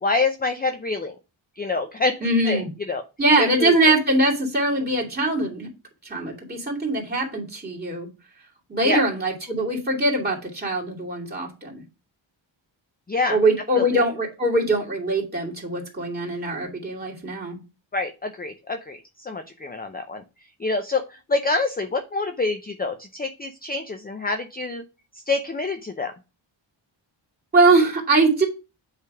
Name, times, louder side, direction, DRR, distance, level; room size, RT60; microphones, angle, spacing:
voice 1, 0.0-1.1 1.6-2.2 2.5-2.6 2.9-3.0 3.4-3.8 8.8-9.0 13.1-13.4 13.8-14.0 17.9-20.2 20.6-24.8 25.3-26.1, left 3 dB, 20° left, 6 dB, 0.5 m, -26 dB
voice 2, 2.2-2.7 3.2-5.7 6.0-8.1 8.7-11.8 13.3-17.6 27.5-28.5, right 2 dB, 20° right, -3 dB, 2.6 m, -22 dB
8.4 x 3.4 x 4.8 m, 0.29 s
wide cardioid pair, 120°, 47 cm